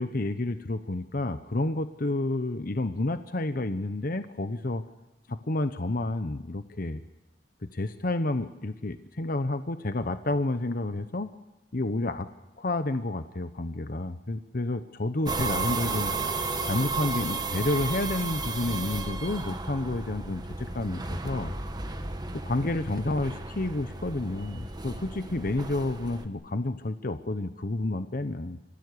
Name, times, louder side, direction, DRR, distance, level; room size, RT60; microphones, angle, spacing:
voice 1, 0.0-4.8 5.3-7.0 7.6-11.3 11.7-12.3 12.6-16.1 16.6-21.5 22.4-28.6, left 2 dB, 50° left, 10 dB, 0.9 m, -30 dB
sound 1, 15.2-26.3, right 3 dB, 25° right, 1.5 m, -33 dB
27.0 x 15.5 x 9.7 m, 1.1 s
head